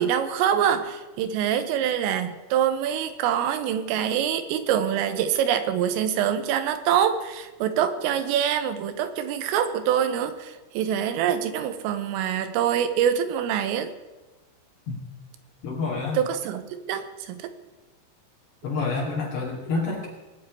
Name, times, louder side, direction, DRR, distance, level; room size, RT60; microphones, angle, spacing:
voice 1, 0.0-13.9 16.2-17.5, right 9 dB, 85° right, 10 dB, 3.8 m, -25 dB
voice 2, 15.6-16.2 18.6-20.1, left 3 dB, 60° left, -4 dB, 4.4 m, -28 dB
19.5 x 7.8 x 9.5 m, 1.2 s
omnidirectional pair, 5.9 m